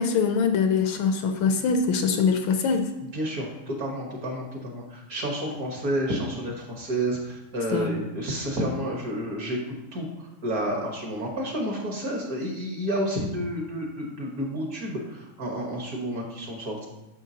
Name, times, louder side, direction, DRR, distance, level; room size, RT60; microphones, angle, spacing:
voice 1, 0.0-2.9 7.7-8.0, left 5 dB, 75° left, 6 dB, 1.3 m, -23 dB
voice 2, 3.1-9.6 9.9-16.9, equal, 50° right, 0 dB, 1.4 m, -30 dB
9.1 x 6.8 x 2.8 m, 0.95 s
omnidirectional pair, 2.4 m